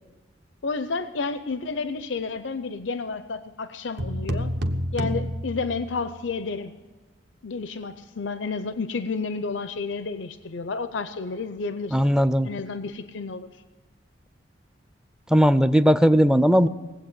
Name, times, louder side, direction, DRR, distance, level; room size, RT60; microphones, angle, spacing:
voice 1, 0.6-4.5 4.9-6.7 7.4-12.0 12.4-13.5, left 4 dB, 85° left, 11 dB, 0.6 m, -31 dB
sound 1, 4.0-6.2, equal, 60° right, 1.1 m, -29 dB
voice 2, 11.9-12.5 15.3-16.7, equal, 5° right, 14 dB, 0.4 m, -18 dB
19.0 x 8.2 x 8.9 m, 1.4 s
head